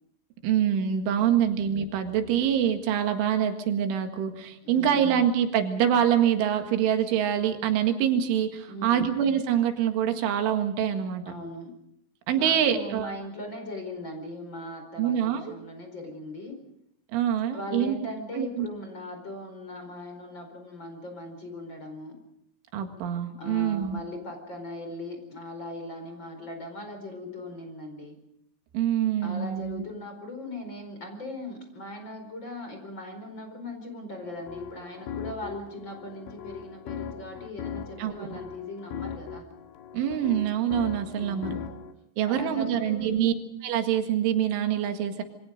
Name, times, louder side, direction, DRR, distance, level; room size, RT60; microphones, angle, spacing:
voice 1, 0.4-11.3 12.3-13.1 15.0-15.5 17.1-18.0 18.4-18.7 22.7-24.0 28.7-29.8 38.0-38.3 39.9-41.6 42.2-43.3 43.6-45.2, right 9 dB, 90° right, 6 dB, 4.3 m, -25 dB
voice 2, 1.2-1.5 4.6-5.1 8.7-9.1 11.3-11.7 12.3-16.6 17.5-22.2 23.4-28.2 29.2-39.4 41.1-41.7 42.2-43.1, left 1 dB, 25° left, 5 dB, 4.8 m, -39 dB
sound 1, 34.2-41.9, left 7 dB, 90° left, 4.3 m, -39 dB
27.5 x 24.0 x 5.2 m, 0.75 s
omnidirectional pair, 5.4 m